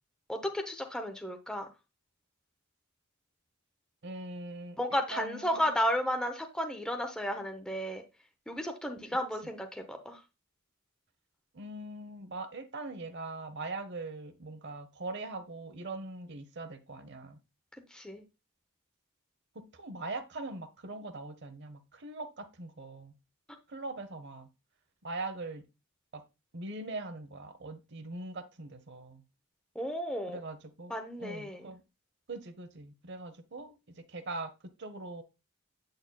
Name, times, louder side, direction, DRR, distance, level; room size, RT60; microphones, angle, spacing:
voice 1, 0.3-1.7 4.8-8.0 8.5-10.2 17.9-18.2 29.7-30.4 30.9-31.6, equal, 5° left, 4 dB, 0.7 m, -33 dB
voice 2, 4.0-5.7 11.5-17.4 19.5-23.1 23.7-24.5 25.0-25.6 26.1-26.2 26.5-29.2 30.3-31.8 32.3-34.5 34.8-35.2, right 2 dB, 55° right, 11 dB, 0.9 m, -41 dB
8.7 x 6.5 x 2.3 m, 0.26 s
head